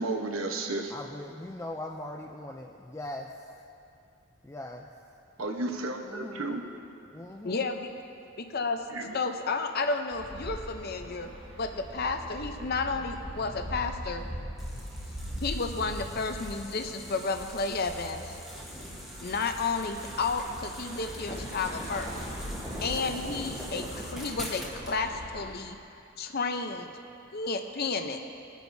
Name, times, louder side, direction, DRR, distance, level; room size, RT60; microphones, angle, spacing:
voice 1, 0.0-0.9 5.4-6.6 8.9-9.2, right 2 dB, 80° right, 3 dB, 1.1 m, -32 dB
voice 2, 0.9-3.3 4.4-4.9 6.0-6.6 7.1-7.7, left 1 dB, 15° left, 0 dB, 0.4 m, -40 dB
voice 3, 7.4-7.9 8.4-8.8 9.1-11.3 11.6-14.2 15.4-18.4 19.2-22.1 22.8-25.8 26.2-26.9 27.3-28.2, left 4 dB, 50° left, 5 dB, 0.7 m, -32 dB
sound 1, 10.1-25.6, equal, 30° right, 2.2 m, -41 dB
sound 2, 14.6-25.0, equal, ahead, 1.2 m, -43 dB
21.5 x 9.2 x 2.7 m, 2.5 s
head